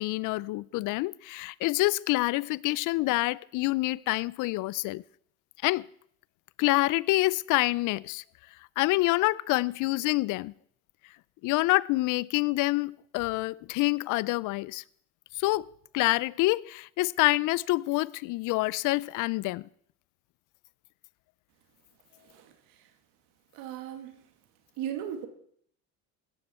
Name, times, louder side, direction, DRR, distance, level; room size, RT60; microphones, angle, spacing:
voice 1, 0.0-5.0 5.6-5.9 6.6-8.2 8.8-10.5 11.4-14.8 15.4-15.7 15.9-19.7, left 20 dB, 65° left, 0.5 m, -27 dB
voice 2, 22.2-22.9 23.5-24.2 24.8-25.3, right 10 dB, 80° right, 2.2 m, -38 dB
16.5 x 13.5 x 4.4 m
supercardioid pair, 95°, 33 cm